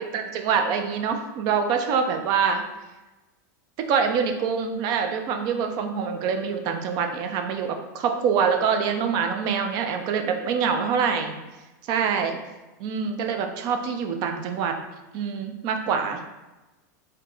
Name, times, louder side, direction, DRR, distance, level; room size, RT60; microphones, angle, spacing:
voice 1, 0.1-2.6 3.8-11.4 11.9-12.4 12.8-14.8 15.1-16.2, right 6 dB, 45° right, 5 dB, 0.5 m, -25 dB
3.6 x 2.8 x 3.7 m, 1.1 s
supercardioid pair, 135°, 10 cm